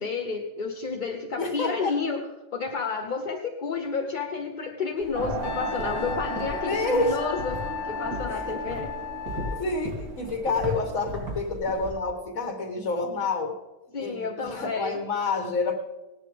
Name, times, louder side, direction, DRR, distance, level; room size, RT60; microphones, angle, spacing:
voice 1, 0.0-2.2 2.5-7.6 7.9-8.9 13.9-15.0, left 5 dB, 40° left, 3 dB, 0.8 m, -31 dB
voice 2, 1.3-2.0 6.7-7.2 8.3-8.6 9.5-13.6 14.0-15.7, left 3 dB, 65° left, 4 dB, 1.6 m, -28 dB
sound 1, 5.0-11.9, equal, 80° right, 3.5 m, -37 dB
sound 2, 5.1-11.1, right 4 dB, 60° right, 1.7 m, -37 dB
Wind instrument woodwind instrument, 5.4-9.6, left 9 dB, 80° left, 1.1 m, -35 dB
17.0 x 11.0 x 3.4 m, 1.1 s
omnidirectional pair, 1.5 m